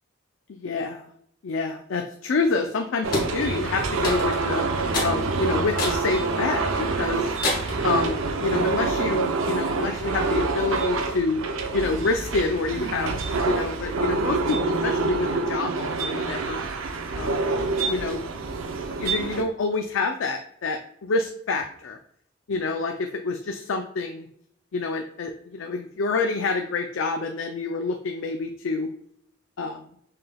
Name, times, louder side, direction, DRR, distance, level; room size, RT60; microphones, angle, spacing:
voice 1, 0.5-1.1 1.4-4.6 5.0-7.2 7.8-11.4 11.7-13.1 13.4-16.6 17.2-17.5 17.9-18.2 18.9-20.8 21.1-22.0 22.5-24.3 24.7-28.9 29.6-29.8, left 3 dB, 80° left, 4 dB, 0.4 m, -27 dB
sound 1, 3.0-19.4, right 3 dB, 90° right, 0.6 m, -26 dB
sound 2, 3.1-3.3 4.0-4.5 4.9-5.2 5.8-6.0 6.5-6.6 7.4-7.8, left 1 dB, 40° left, 1.6 m, -27 dB
5.6 x 3.4 x 2.3 m, 0.68 s
head